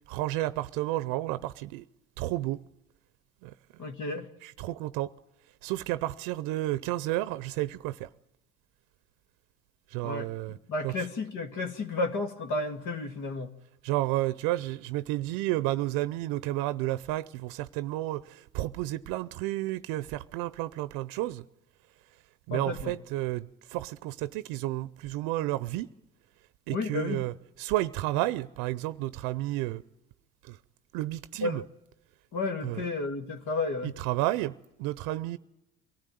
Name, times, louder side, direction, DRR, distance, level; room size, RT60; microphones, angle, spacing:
voice 1, 0.1-1.8 2.2-2.6 3.4-3.5 4.4-5.1 5.6-8.1 9.9-10.6 10.8-10.9 13.8-21.4 22.5-25.9 26.7-29.8 30.5-30.6 30.9-31.6 32.6-32.8 33.8-34.5 34.8-35.4, right 16 dB, 80° right, 0.7 m, -31 dB
voice 2, 3.8-4.3 10.0-10.3 10.7-13.5 22.5-22.9 26.7-27.3 31.4-31.6 32.3-33.9, left 3 dB, 60° left, 2.1 m, -32 dB
23.0 x 14.5 x 9.2 m
supercardioid pair, 75°, 34 cm